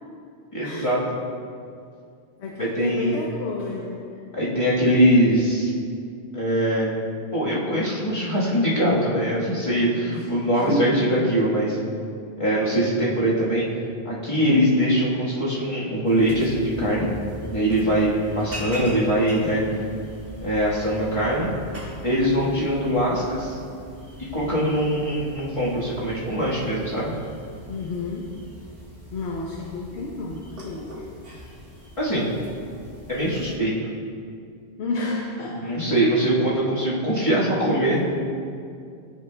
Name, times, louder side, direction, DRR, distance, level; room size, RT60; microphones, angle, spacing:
voice 1, 0.5-1.2 2.6-3.2 4.3-5.7 6.3-6.9 7.3-11.8 12.4-13.7 14.0-17.1 17.5-18.1 18.3-19.6 20.4-21.5 22.0-23.6 24.3-27.1 32.0-32.3 33.1-33.7 35.5-38.0, equal, 30° left, -8 dB, 1.4 m, -22 dB
voice 2, 2.4-4.2 10.1-10.3 10.5-11.1 17.8-18.1 22.4-22.8 24.4-24.8 27.7-28.4 29.1-31.1 34.8-35.8 37.9-38.0, left 2 dB, 90° left, -1 dB, 1.0 m, -31 dB
sound 1, 16.0-33.6, left 1 dB, 60° right, 1.6 m, -40 dB
13.0 x 4.8 x 2.2 m, 2.3 s
omnidirectional pair, 1.1 m